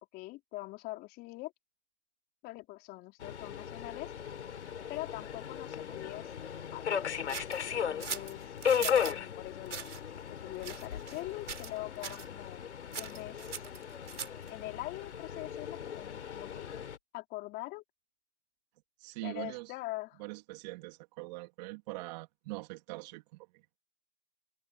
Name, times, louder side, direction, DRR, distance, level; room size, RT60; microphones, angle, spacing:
voice 1, 0.1-1.5 2.4-4.1 4.9-6.3 6.7-7.3 7.7-9.9 10.3-12.6 13.0-13.6 14.5-16.8 17.1-17.8 19.2-20.2, left 19 dB, 25° left, 4.0 m, -43 dB
Subway metro underground, 3.2-17.0, left 8 dB, 75° left, 3.5 m, -37 dB
sound 1, 7.3-9.2 9.7-10.0 10.6-11.2 11.5-11.8 12.0-12.3 12.9-14.5, right 6 dB, 90° right, 5.8 m, -41 dB
voice 2, 19.0-19.7 20.2-23.2, right 23 dB, 35° right, 2.9 m, -42 dB
hypercardioid pair, 140°, 34 cm